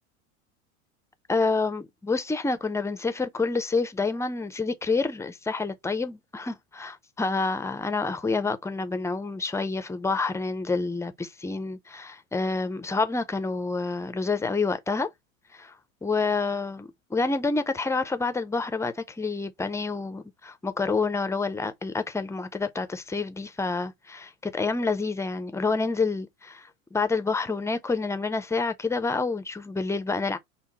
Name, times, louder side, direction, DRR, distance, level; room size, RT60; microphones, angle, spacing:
voice 1, 1.3-15.1 15.5-15.7 16.0-30.4, left 3 dB, 5° left, 0.5 m, -28 dB
5.6 x 2.1 x 4.1 m
hypercardioid pair, 90°, 41 cm